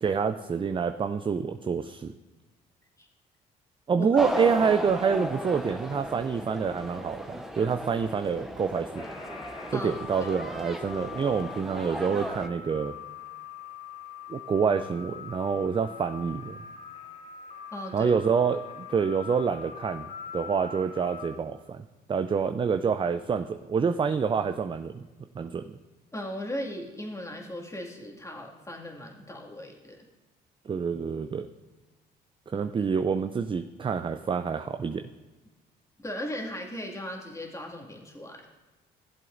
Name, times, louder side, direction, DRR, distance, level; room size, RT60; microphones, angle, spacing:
voice 1, 0.0-2.1 3.9-9.1 9.7-12.9 14.3-16.6 17.9-21.8 22.1-25.0 25.4-25.8 30.7-31.5 32.5-35.1, right 6 dB, 25° right, 9 dB, 0.4 m, -27 dB
sound 1, 4.1-12.5, equal, ahead, 0.9 m, -36 dB
sound 2, 8.9-21.3, left 6 dB, 75° left, 1.8 m, -43 dB
voice 2, 17.7-18.1 26.1-30.0 32.5-32.6 36.0-38.4, left 1 dB, 15° left, 0 dB, 2.0 m, -37 dB
15.0 x 7.6 x 2.6 m, 1.2 s
hypercardioid pair, 60°, 21 cm